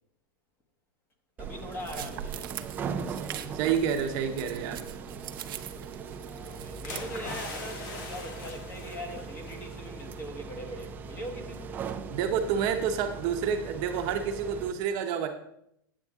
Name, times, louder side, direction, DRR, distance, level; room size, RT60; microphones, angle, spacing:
voice 1, 1.4-2.7 5.2-5.4 6.3-11.7, equal, 15° left, 1.1 m, -41 dB
sound 1, 1.4-14.7, right 5 dB, 15° right, 0.4 m, -40 dB
sound 2, 1.8-7.0, right 11 dB, 70° right, 0.7 m, -42 dB
voice 2, 3.5-4.8 12.1-15.3, right 7 dB, 35° right, 0.8 m, -28 dB
sound 3, 6.8-9.9 10.2-10.4, left 2 dB, 40° left, 2.0 m, -41 dB
9.5 x 8.1 x 3.6 m
supercardioid pair, 160°, 12 cm